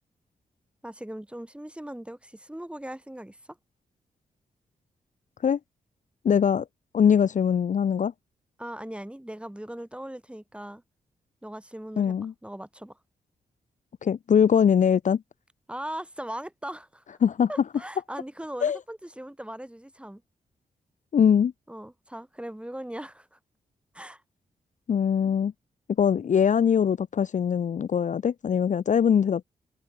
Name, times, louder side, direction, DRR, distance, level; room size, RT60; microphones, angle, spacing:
voice 1, 0.8-3.6 8.6-10.8 11.4-12.2 12.4-13.0 15.7-17.2 17.5-20.2 21.7-23.4 23.9-24.2, right 1 dB, 5° right, 2.8 m, -39 dB
voice 2, 6.2-6.7 6.9-8.1 12.0-12.3 14.0-15.2 17.2-17.5 18.6-18.8 21.1-21.5 24.9-25.5 26.0-29.4, left 7 dB, 55° left, 0.6 m, -22 dB
open air
supercardioid pair, 45°, 16 cm